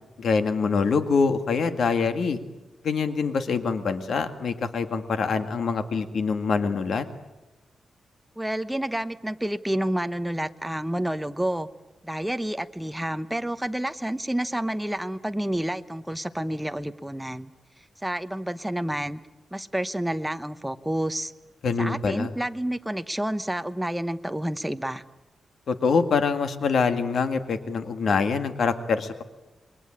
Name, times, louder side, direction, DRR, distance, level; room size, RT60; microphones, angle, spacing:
voice 1, 0.2-2.4 2.8-7.1 21.6-22.3 25.7-29.2, left 5 dB, 70° left, 8 dB, 2.0 m, -25 dB
voice 2, 8.4-11.7 12.0-17.5 18.0-19.2 19.5-21.3 21.8-25.0, right 1 dB, 5° right, 10 dB, 0.9 m, -29 dB
28.0 x 22.0 x 8.8 m, 1.1 s
wide cardioid pair, 125°, 0 cm